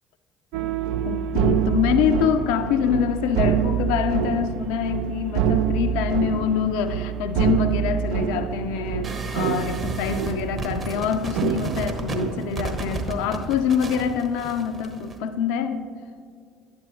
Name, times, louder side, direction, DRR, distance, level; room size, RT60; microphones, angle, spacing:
sound 1, 0.5-12.7, right 9 dB, 65° right, 0.3 m, -26 dB
voice 1, 1.0-15.9, left 7 dB, 70° left, 9 dB, 0.4 m, -25 dB
sound 2, 9.0-15.2, right 3 dB, 40° right, 1.3 m, -32 dB
12.0 x 9.3 x 3.0 m, 2.2 s
hypercardioid pair, 60°, 0 cm